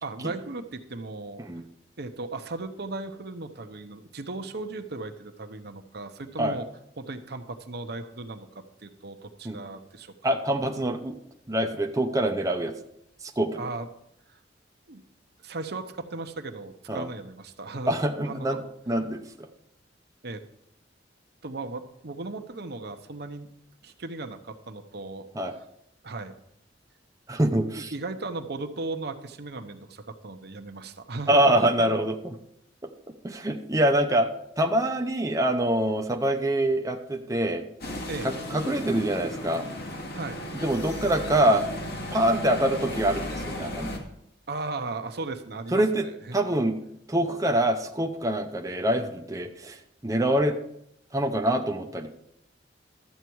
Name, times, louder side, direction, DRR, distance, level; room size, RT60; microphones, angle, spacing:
voice 1, 0.0-1.4 2.0-6.7 7.0-10.1 13.6-13.9 14.3-14.4 14.9-15.0 15.4-17.9 18.2-18.5 20.2-20.4 21.4-23.5 23.8-25.3 26.0-26.3 27.9-32.0 38.1-38.3 40.1-40.4 44.5-46.4, right 3 dB, 60° right, 7 dB, 0.9 m, -36 dB
voice 2, 10.2-11.1 11.5-12.8 13.2-13.6 16.9-17.1 17.9-18.6 18.9-19.5 25.3-25.5 27.3-27.9 31.3-32.4 33.2-34.3 34.6-37.7 38.2-39.7 40.6-41.6 42.1-44.0 45.7-46.1 46.3-46.8 47.1-50.6 51.1-52.1, right 1 dB, 20° right, 3 dB, 0.7 m, -25 dB
sound 1, 37.8-44.0, left 1 dB, 55° left, 1.9 m, -35 dB
13.0 x 8.1 x 4.6 m, 0.76 s
head